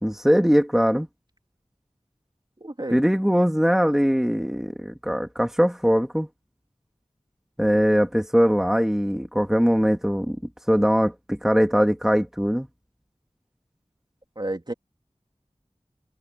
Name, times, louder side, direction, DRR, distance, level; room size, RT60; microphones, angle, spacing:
voice 1, 0.0-1.1 2.9-6.3 7.6-10.4 10.7-12.7, equal, 5° right, 2.3 m, -21 dB
voice 2, 2.6-3.0 14.3-14.7, right 1 dB, 40° right, 3.2 m, -31 dB
wide cardioid pair, 45°, 12 cm